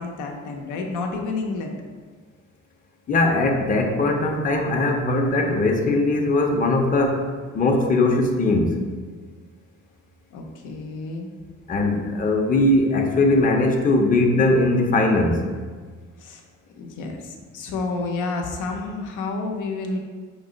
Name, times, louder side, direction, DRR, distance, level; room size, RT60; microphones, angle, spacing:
voice 1, 0.0-1.7 10.3-11.3 16.2-16.4 16.8-20.0, left 3 dB, 85° left, 2 dB, 0.6 m, -30 dB
voice 2, 3.1-7.2 7.5-8.8 11.7-15.5, left 2 dB, 30° left, 2 dB, 0.5 m, -20 dB
5.3 x 2.0 x 3.7 m, 1.5 s
cardioid pair, 90°, 30 cm